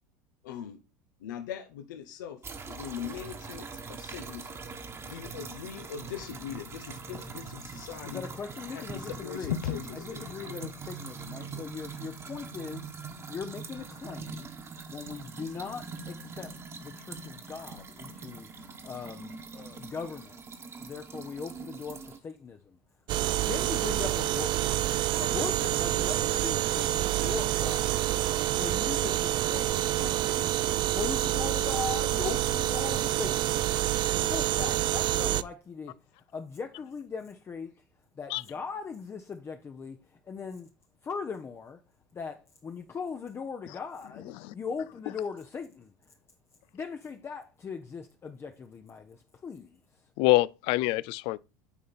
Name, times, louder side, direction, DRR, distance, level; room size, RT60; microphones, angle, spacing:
voice 1, 0.4-0.8 1.2-4.6 5.0-8.3 8.7-10.7 11.2-11.6, left 9 dB, 85° left, 0.8 m, -39 dB
sound 1, 2.4-22.2, right 4 dB, 25° right, 1.4 m, -43 dB
voice 2, 8.0-9.5 10.0-14.5 14.9-18.5 18.8-22.8 23.4-24.7 25.2-28.1 28.5-36.0 36.3-37.8 38.2-40.7 41.0-41.8 42.1-46.1 46.7-50.0, left 5 dB, 25° left, 0.7 m, -40 dB
sound 2, 23.1-35.4, right 14 dB, 50° right, 0.5 m, -27 dB
voice 3, 50.2-51.4, left 20 dB, 65° left, 0.4 m, -25 dB
9.8 x 3.8 x 4.1 m
supercardioid pair, 105°, 10 cm